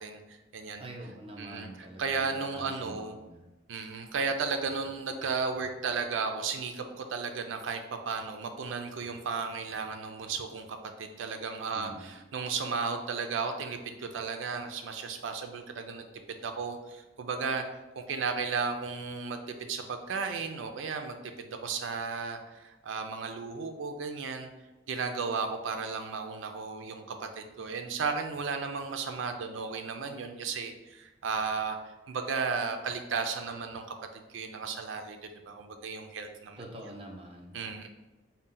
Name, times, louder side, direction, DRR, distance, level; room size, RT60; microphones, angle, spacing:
voice 1, 0.0-0.8 1.4-3.1 3.7-10.7 11.0-17.6 18.0-24.5 24.9-31.8 32.1-33.9 34.1-36.6 37.5-37.9, right 5 dB, 85° right, 5 dB, 0.4 m, -34 dB
voice 2, 0.8-3.5 11.7-12.2 36.6-37.9, right 1 dB, 30° right, 0 dB, 0.6 m, -45 dB
4.0 x 2.1 x 3.7 m, 1.1 s
head